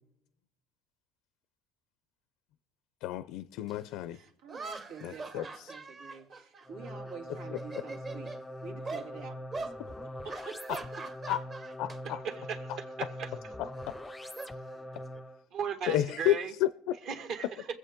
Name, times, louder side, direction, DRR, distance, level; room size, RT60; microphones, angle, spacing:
voice 1, 3.0-4.2 5.0-5.7 7.3-7.8 10.7-10.8 11.3-11.4 11.8-12.2 12.7-12.8 13.6-13.9 15.9-17.0, left 13 dB, 70° left, 0.5 m, -32 dB
sound 1, 3.7-3.8 4.5-7.1 7.5-8.4 8.9-9.1 9.5-9.8 10.3-12.0 12.3-12.6 13.8-15.2, right 3 dB, 30° right, 1.1 m, -42 dB
voice 2, 4.1-8.3 8.6-9.7 10.2-10.6, right 5 dB, 90° right, 2.6 m, -47 dB
sound 2, 6.7-15.5, equal, 10° left, 0.4 m, -43 dB
voice 3, 12.2-12.6 13.2-13.3 15.5-16.5 17.1-17.7, right 7 dB, 50° right, 1.7 m, -36 dB
23.5 x 8.0 x 3.7 m
cardioid pair, 140°, 0 cm